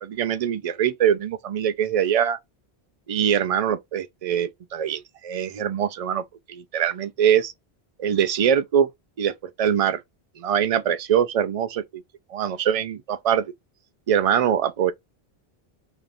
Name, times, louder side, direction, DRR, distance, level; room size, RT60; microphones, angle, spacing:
voice 1, 0.0-2.4 3.1-7.5 8.0-8.9 9.2-10.0 10.4-12.0 12.3-13.5 14.1-14.9, right 9 dB, 55° right, 0.4 m, -23 dB
5.0 x 2.7 x 2.4 m
omnidirectional pair, 1.1 m